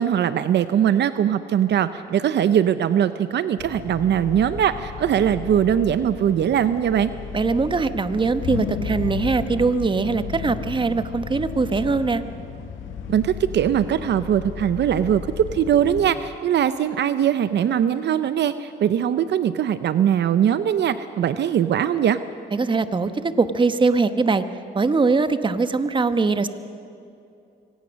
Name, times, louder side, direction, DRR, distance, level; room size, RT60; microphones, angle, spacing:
voice 1, 0.0-7.1 13.1-22.2, right 9 dB, 60° right, 12 dB, 0.7 m, -21 dB
sound 1, 3.6-16.1, left 6 dB, 80° left, 1.7 m, -34 dB
voice 2, 7.3-12.2 22.5-24.4 24.7-26.5, right 4 dB, 25° right, 11 dB, 1.0 m, -21 dB
24.5 x 17.5 x 6.4 m, 2.6 s
cardioid pair, 90°, 20 cm